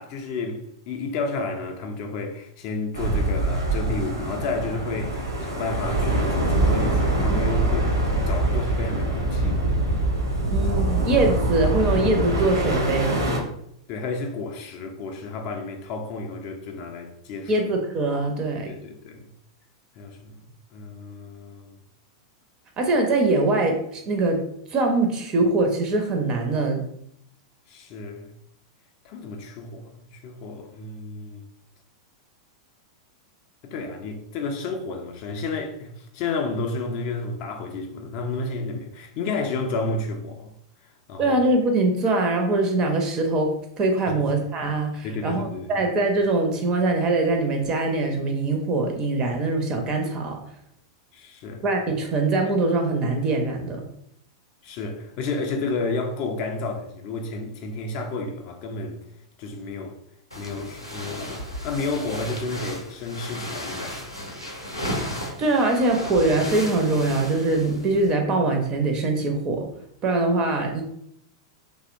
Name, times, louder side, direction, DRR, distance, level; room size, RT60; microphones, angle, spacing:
voice 1, 0.0-7.9 8.3-9.6 10.5-10.6 13.9-17.5 18.7-19.3 20.0-20.4 20.7-21.7 27.7-28.3 29.0-31.4 33.6-40.5 41.1-41.4 44.1-44.2 45.0-45.8 51.1-51.6 54.6-59.0 59.4-60.0 60.4-64.0, left 3 dB, 40° left, 0.3 m, -31 dB
sound 1, 2.9-13.4, right 1 dB, 75° right, 0.7 m, -24 dB
voice 2, 10.5-13.3 17.5-18.8 22.8-24.4 24.7-26.8 41.2-50.4 51.6-53.8 65.4-69.7 70.0-70.8, right 2 dB, 30° right, 0.4 m, -23 dB
sound 2, 60.3-68.1, equal, 90° left, 0.6 m, -34 dB
2.7 x 2.0 x 2.4 m
figure-of-eight pair, 95°, 2 cm